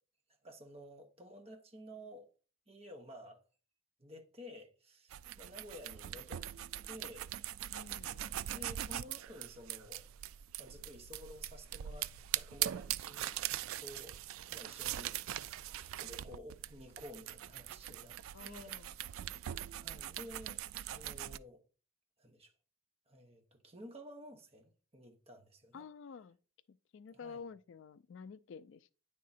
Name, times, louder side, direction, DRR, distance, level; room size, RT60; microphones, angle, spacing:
voice 1, 0.4-2.3 2.7-3.4 4.0-6.5 6.8-7.3 7.7-8.0 8.5-10.0 10.6-13.4 13.8-14.2 14.5-15.2 15.8-19.4 19.8-20.6 20.9-21.6 22.2-22.5 23.1-25.9 27.1-27.5, equal, 30° right, 1.0 m, -52 dB
sound 1, 5.1-21.4, right 12 dB, 75° right, 0.3 m, -41 dB
voice 2, 7.7-8.2 18.3-18.9 25.7-26.4 26.7-28.9, left 5 dB, 60° left, 0.3 m, -50 dB
9.3 x 3.7 x 4.1 m
head